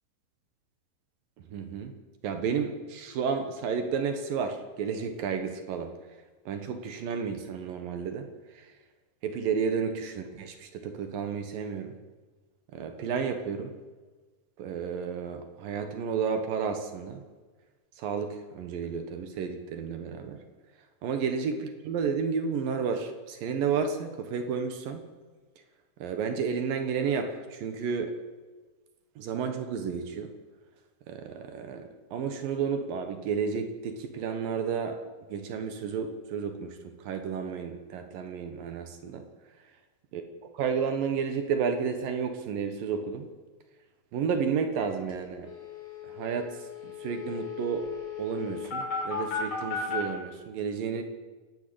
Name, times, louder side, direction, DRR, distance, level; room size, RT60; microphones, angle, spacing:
voice 1, 1.5-1.9 2.2-5.9 6.5-8.7 9.2-12.0 12.7-13.7 14.6-17.2 18.0-20.4 21.0-25.0 26.0-28.2 29.2-30.3 31.1-35.0 35.3-39.3 40.1-40.2 40.6-43.3 44.1-45.5 46.0-47.9 48.2-51.0, right 6 dB, 70° right, 7 dB, 2.9 m, -32 dB
sound 1, 44.8-44.9 45.1-45.2 45.4-50.0, left 6 dB, 35° left, 6.7 m, -36 dB
28.5 x 12.0 x 8.7 m, 1.4 s
omnidirectional pair, 4.5 m